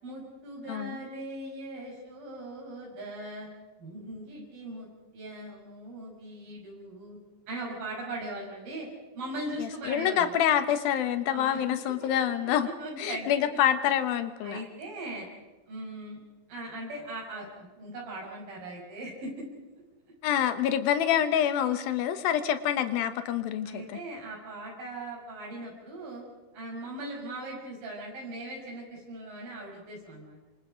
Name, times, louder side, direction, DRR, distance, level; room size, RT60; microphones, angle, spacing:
voice 1, 0.0-3.5 3.8-4.9 5.1-7.2 7.5-8.9 9.2-10.4 11.3-11.6 12.0-12.1 12.4-13.3 14.4-15.3 15.7-16.2 16.5-19.5 23.6-26.2 26.5-30.4, right 1 dB, 80° right, -3 dB, 7.4 m, -39 dB
voice 2, 0.7-1.0 9.6-12.7 13.0-14.7 20.2-24.0, left 10 dB, 85° left, 10 dB, 3.0 m, -27 dB
27.0 x 25.0 x 5.2 m, 1.1 s
omnidirectional pair, 4.1 m